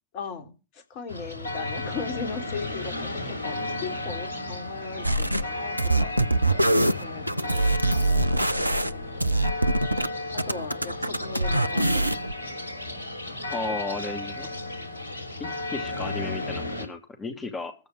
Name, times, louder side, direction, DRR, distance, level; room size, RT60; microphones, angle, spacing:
voice 1, 0.1-6.1 7.0-9.2 10.3-12.1, left 5 dB, 45° left, 3.3 m, -38 dB
sound 1, 1.1-16.9, left 2 dB, 75° left, 4.5 m, -34 dB
sound 2, 5.0-5.4 5.8-10.1 10.4-12.3, right 1 dB, 85° right, 0.6 m, -23 dB
voice 2, 13.5-14.5 15.4-17.8, left 3 dB, 20° left, 2.8 m, -34 dB
14.5 x 5.2 x 8.9 m
figure-of-eight pair, 90°, 0 cm